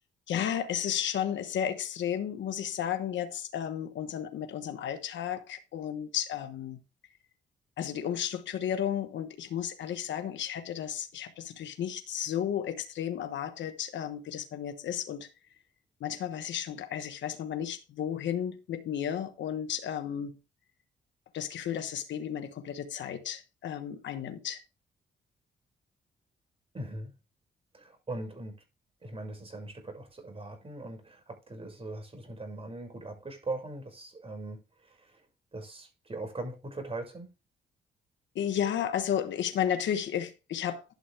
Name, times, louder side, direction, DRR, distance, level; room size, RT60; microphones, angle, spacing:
voice 1, 0.3-6.8 7.8-15.3 16.0-20.4 21.3-24.6 38.3-40.8, left 9 dB, 75° left, 1.2 m, -33 dB
voice 2, 26.7-27.1 27.7-28.6 29.0-35.2 35.5-37.3, right 2 dB, 30° right, 6.1 m, -40 dB
12.0 x 6.9 x 3.5 m
cardioid pair, 65°, 19 cm